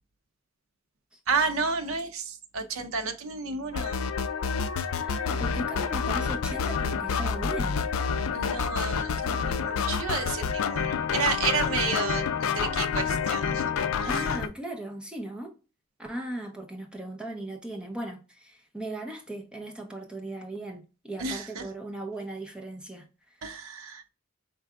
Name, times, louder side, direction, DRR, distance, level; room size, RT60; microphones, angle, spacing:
voice 1, 1.3-4.0 8.3-12.2 12.5-13.6 14.0-14.2 21.2-21.7 23.4-24.1, right 4 dB, 80° right, 0.6 m, -31 dB
sound 1, 3.7-14.5, left 6 dB, 90° left, 0.4 m, -28 dB
voice 2, 5.1-7.8 14.1-15.5 16.0-23.4, right 1 dB, 5° right, 0.7 m, -38 dB
4.6 x 3.3 x 2.4 m
head